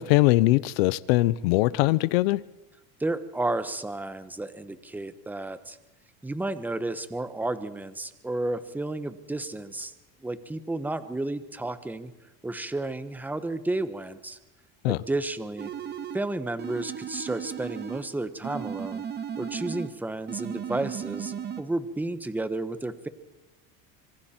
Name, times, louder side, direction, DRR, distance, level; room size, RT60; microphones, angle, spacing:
voice 1, 0.0-2.4 14.8-15.0, left 18 dB, 90° left, 19 dB, 0.8 m, -21 dB
voice 2, 3.0-5.8 6.2-9.9 10.2-12.1 12.4-14.4 14.9-15.7 16.1-19.0 19.4-23.1, right 2 dB, 5° right, 12 dB, 1.2 m, -32 dB
sound 1, 15.6-16.3 16.6-18.1 18.4-20.0 20.3-21.6, right 8 dB, 35° right, 1.6 m, -35 dB
26.5 x 24.0 x 4.4 m, 0.97 s
supercardioid pair, 130°, 29 cm